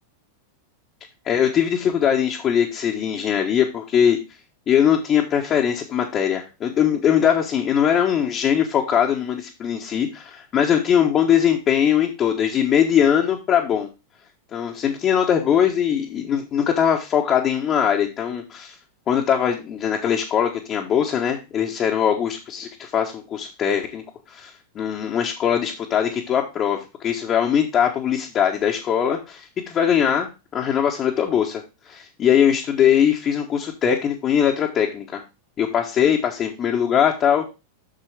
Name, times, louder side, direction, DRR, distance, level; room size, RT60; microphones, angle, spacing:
voice 1, 1.2-4.2 4.7-13.9 14.5-18.8 19.1-24.0 24.3-35.2 35.6-37.4, left 8 dB, 30° left, -1 dB, 1.2 m, -21 dB
7.7 x 6.7 x 3.3 m, 0.27 s
figure-of-eight pair, 90°, 0 cm